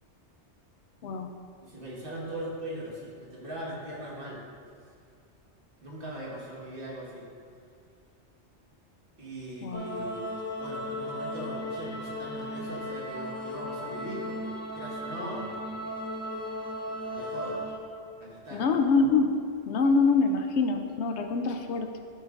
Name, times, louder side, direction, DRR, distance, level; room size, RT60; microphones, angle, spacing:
voice 1, 1.0-1.3 9.6-10.1 18.5-19.4 19.7-22.0, left 4 dB, 75° left, 6 dB, 0.9 m, -25 dB
voice 2, 1.6-4.4 5.8-7.3 9.2-10.3 10.6-15.6 17.1-17.6 18.2-18.7, right 1 dB, 50° right, -5 dB, 1.8 m, -40 dB
sound 1, 9.7-17.8, equal, 20° left, 0.6 m, -36 dB
12.5 x 6.7 x 2.5 m, 2.3 s
omnidirectional pair, 1.2 m